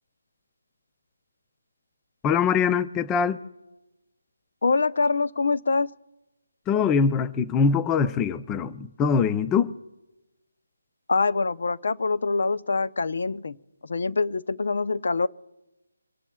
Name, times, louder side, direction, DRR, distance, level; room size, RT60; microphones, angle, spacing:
voice 1, 2.2-3.4 6.7-9.7, left 6 dB, 10° left, 0.4 m, -23 dB
voice 2, 4.6-5.9 11.1-13.6 13.8-15.3, left 4 dB, 60° left, 0.6 m, -24 dB
26.0 x 17.5 x 2.3 m
figure-of-eight pair, 165°, 0 cm